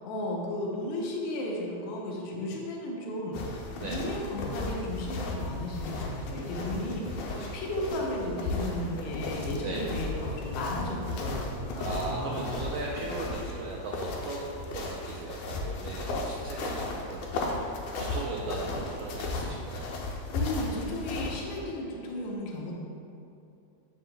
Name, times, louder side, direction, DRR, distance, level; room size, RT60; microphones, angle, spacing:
voice 1, 0.0-12.5 20.3-22.7, left 1 dB, 70° left, -2 dB, 1.7 m, -34 dB
sound 1, 3.3-21.6, left 2 dB, 85° left, 2.0 m, -35 dB
voice 2, 7.3-7.8 9.6-9.9 11.8-17.7 18.0-19.8, right 3 dB, 90° right, -3 dB, 1.4 m, -38 dB
8.0 x 5.6 x 2.2 m, 2.7 s
omnidirectional pair, 3.3 m